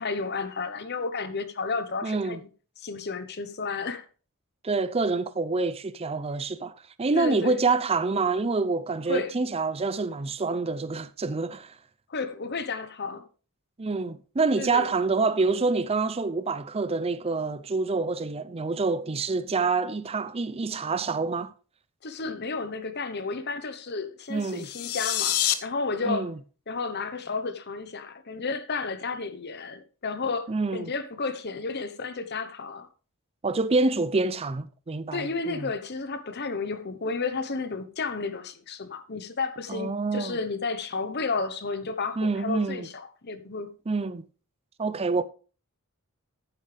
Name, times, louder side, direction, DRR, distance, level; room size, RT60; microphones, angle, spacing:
voice 1, 0.0-2.5 2.8-4.0 7.1-7.6 9.1-9.3 12.1-13.2 14.6-14.9 22.0-26.3 26.7-32.9 35.1-43.7, left 4 dB, 50° left, 1.0 m, -32 dB
voice 2, 2.0-2.4 4.6-11.8 13.8-21.5 24.3-24.7 26.0-26.4 30.5-30.9 33.4-35.7 39.7-40.4 42.2-42.9 43.9-44.2 44.8-45.2, right 3 dB, 25° right, 0.5 m, -27 dB
sound 1, 24.5-25.5, left 12 dB, 80° left, 1.1 m, -26 dB
11.0 x 9.9 x 3.4 m
head